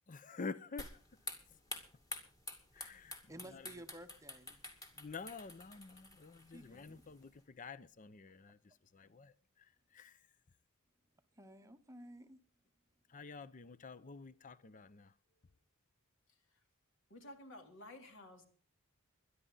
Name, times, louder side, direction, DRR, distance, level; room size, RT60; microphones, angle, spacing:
voice 1, 0.1-1.0 1.5-1.6 2.7-3.7 4.6-10.3 13.1-15.1, left 4 dB, 35° left, 0.6 m, -49 dB
sound 1, 0.8-7.4, left 2 dB, 15° left, 2.5 m, -50 dB
voice 2, 3.3-4.6 6.5-7.0 11.4-12.4, right 1 dB, 15° right, 0.8 m, -54 dB
voice 3, 16.3-16.6 17.1-18.5, left 1 dB, 60° left, 3.1 m, -54 dB
22.5 x 11.0 x 3.9 m
head